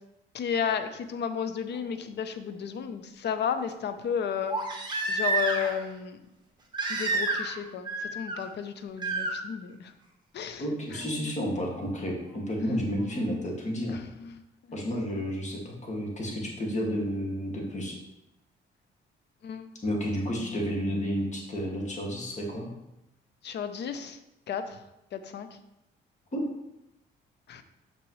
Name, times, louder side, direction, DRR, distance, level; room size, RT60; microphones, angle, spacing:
voice 1, 0.3-4.6 5.1-6.2 6.9-9.9 10.3-10.6 10.9-11.3 13.9-14.4 19.4-19.7 23.4-24.2 24.5-24.8 25.1-25.5 27.5-27.6, left 7 dB, 60° left, 10 dB, 0.7 m, -33 dB
Crying sobbing, 1.8-1.9 4.5-5.8 6.7-7.6 7.9-8.4 9.0-9.3 10.9-11.0, right 3 dB, 20° right, 1.4 m, -29 dB
voice 2, 10.6-14.0 14.7-18.0 19.8-22.7 26.3-26.4, equal, 35° left, -1 dB, 2.1 m, -31 dB
6.8 x 5.9 x 3.1 m, 0.89 s
cardioid pair, 90°, 20 cm